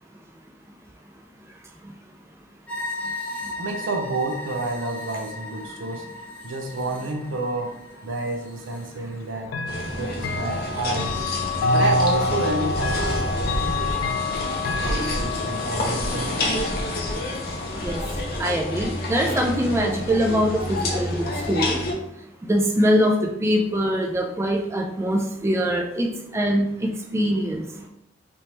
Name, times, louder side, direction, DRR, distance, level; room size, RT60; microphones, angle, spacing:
sound 1, 2.7-8.9, left 1 dB, 5° left, 0.7 m, -36 dB
voice 1, 3.6-9.5 10.0-11.2 11.7-14.1 14.8-16.6, right 2 dB, 75° right, 3 dB, 0.6 m, -29 dB
Chime / Clock, 9.5-20.3, left 3 dB, 80° left, 0.3 m, -29 dB
sound 2, 9.7-21.9, left 1 dB, 55° left, 0.7 m, -28 dB
voice 2, 18.4-21.8 22.4-26.7 27.1-27.6, equal, 15° right, 1 dB, 0.3 m, -23 dB
3.4 x 3.0 x 2.8 m, 0.80 s
head